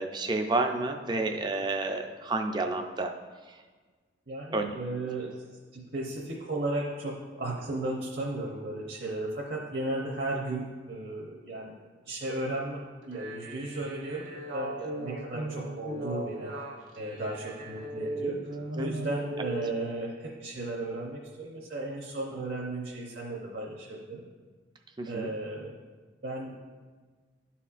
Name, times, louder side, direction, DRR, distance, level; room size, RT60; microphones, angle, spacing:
voice 1, 0.0-3.1 4.5-4.7 18.8-18.9 25.0-25.3, right 2 dB, 20° right, 4 dB, 0.3 m, -30 dB
voice 2, 4.3-5.4 5.7-11.7 12.0-16.5 17.0-18.4 18.7-24.2 25.1-25.8 26.2-26.5, right 2 dB, 55° right, -3 dB, 0.7 m, -35 dB
sound 1, 13.0-19.7, right 2 dB, 85° right, 1.0 m, -37 dB
11.5 x 4.2 x 2.4 m, 1.4 s
head